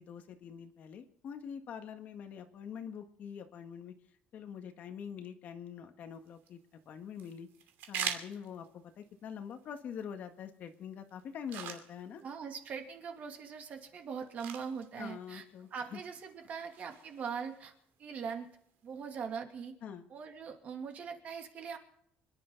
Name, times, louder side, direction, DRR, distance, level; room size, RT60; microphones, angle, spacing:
voice 1, 0.0-3.9 4.3-6.6 6.8-7.5 7.9-12.2 14.9-16.0 19.8-20.1, left 7 dB, 50° left, 6 dB, 1.7 m, -45 dB
sound 1, 6.1-19.1, right 9 dB, 70° right, 2.7 m, -47 dB
voice 2, 12.2-15.5 15.7-17.7 18.0-18.5 18.8-19.8 20.1-21.8, right 6 dB, 45° right, 4 dB, 2.6 m, -41 dB
27.0 x 11.0 x 4.0 m, 0.70 s
cardioid pair, 155°, 4 cm